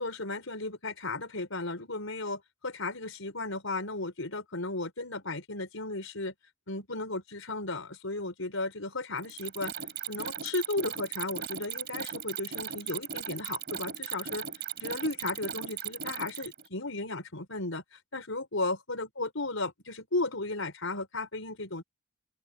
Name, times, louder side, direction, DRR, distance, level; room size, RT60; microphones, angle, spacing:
voice 1, 0.0-6.3 6.7-9.7 10.1-14.5 14.8-21.8, left 2 dB, 70° left, 5.5 m, -35 dB
Mechanisms, 9.2-16.7, right 9 dB, 50° right, 3.9 m, -37 dB
open air
head